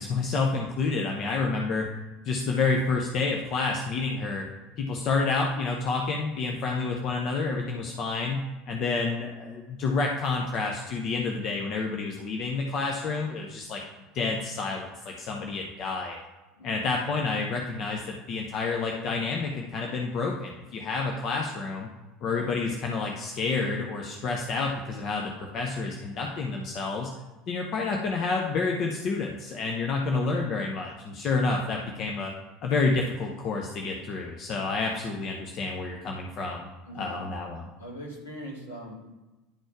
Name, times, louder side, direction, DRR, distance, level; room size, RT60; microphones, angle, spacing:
voice 1, 0.0-1.9 2.2-4.4 4.8-13.8 14.1-16.2 16.6-21.9 22.2-27.1 27.5-32.3 32.6-36.7 37.0-37.7, left 4 dB, 40° left, 1 dB, 0.9 m, -29 dB
voice 2, 16.6-17.0 36.8-37.3 37.8-38.9, equal, 75° left, -4 dB, 2.6 m, -41 dB
10.5 x 4.4 x 4.6 m, 1.1 s
figure-of-eight pair, 70°, 0 cm